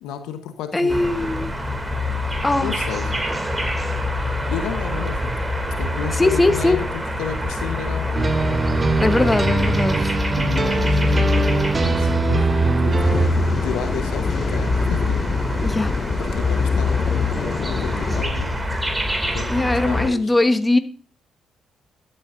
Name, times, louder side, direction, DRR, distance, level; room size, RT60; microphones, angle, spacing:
voice 1, 0.0-1.0 2.6-3.3 4.5-5.3 5.7-6.8 7.2-8.2 9.2-9.8 10.4-13.3 13.6-15.2 16.2-18.5 19.3-20.3, left 8 dB, 75° left, 8 dB, 1.0 m, -32 dB
voice 2, 0.7-1.5 2.4-2.7 6.1-6.8 9.0-10.2 15.6-15.9 19.5-20.8, left 2 dB, 20° left, 9 dB, 1.2 m, -20 dB
sound 1, 0.9-20.1, left 1 dB, 20° right, 2.5 m, -24 dB
sound 2, 8.1-13.3, right 4 dB, 35° right, 0.4 m, -22 dB
sound 3, 13.0-18.3, left 6 dB, 50° left, 0.5 m, -27 dB
13.0 x 8.8 x 2.6 m, 0.40 s
hypercardioid pair, 45°, 0 cm